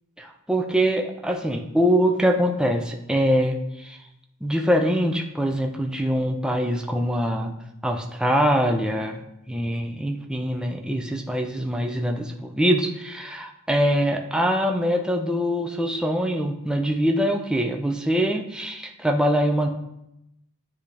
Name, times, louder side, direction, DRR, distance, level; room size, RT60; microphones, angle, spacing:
voice 1, 0.2-4.0 4.4-7.5 7.8-9.2 9.5-19.7, equal, 5° right, 2 dB, 0.5 m, -23 dB
9.6 x 3.4 x 3.3 m, 0.85 s
head